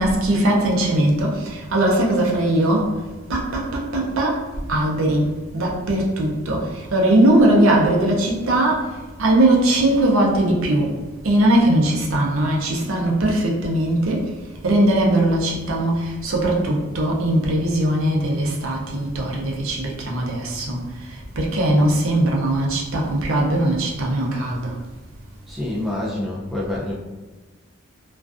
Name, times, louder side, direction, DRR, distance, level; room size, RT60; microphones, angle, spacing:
voice 1, 0.0-2.9 3.3-4.4 4.7-8.9 9.2-11.0 11.2-14.3 14.6-24.7, right 1 dB, 70° right, -2 dB, 0.5 m, -20 dB
voice 2, 25.5-26.9, left 1 dB, ahead, -6 dB, 0.3 m, -27 dB
2.4 x 2.3 x 2.4 m, 1.2 s
head